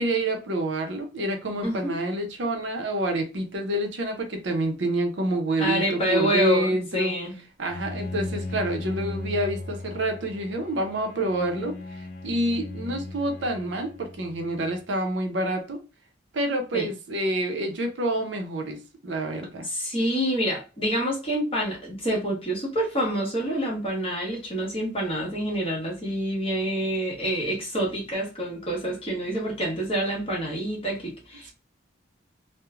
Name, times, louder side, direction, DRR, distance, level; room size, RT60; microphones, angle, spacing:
voice 1, 0.0-7.1 7.6-15.8 16.3-19.7, right 1 dB, 65° right, 0.6 m, -28 dB
voice 2, 1.6-2.0 5.6-7.4 16.7-16.9 19.7-31.5, equal, 30° left, 1.1 m, -27 dB
Bowed string instrument, 7.7-14.8, left 2 dB, 50° left, 0.4 m, -37 dB
3.0 x 2.1 x 2.3 m
head